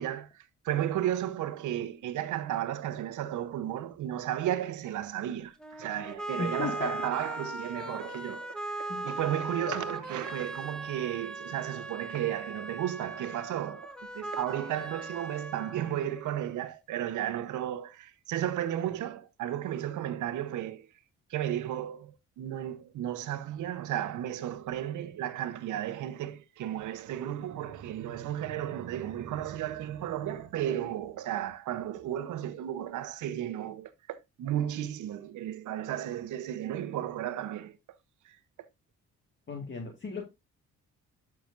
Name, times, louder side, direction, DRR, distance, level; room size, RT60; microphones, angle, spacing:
voice 1, 0.0-20.9 21.3-37.8 38.2-38.4, right 11 dB, 80° right, 1.0 m, -34 dB
sound 1, 5.6-16.6, right 1 dB, 5° left, 1.3 m, -39 dB
voice 2, 6.4-6.9 8.9-9.1 9.7-9.8 39.5-40.2, left 5 dB, 40° left, 1.8 m, -35 dB
12.0 x 6.1 x 2.6 m
cardioid pair, 90°, 30 cm